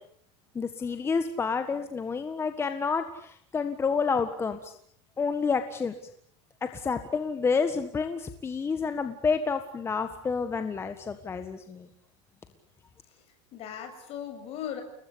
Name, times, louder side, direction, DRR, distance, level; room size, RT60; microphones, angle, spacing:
voice 1, 0.6-4.7 5.2-5.9 6.6-11.9, left 5 dB, 15° left, 9 dB, 1.6 m, -29 dB
voice 2, 13.0-14.8, left 9 dB, 40° left, 6 dB, 7.6 m, -39 dB
30.0 x 20.5 x 8.8 m, 0.68 s
supercardioid pair, 150°, 16 cm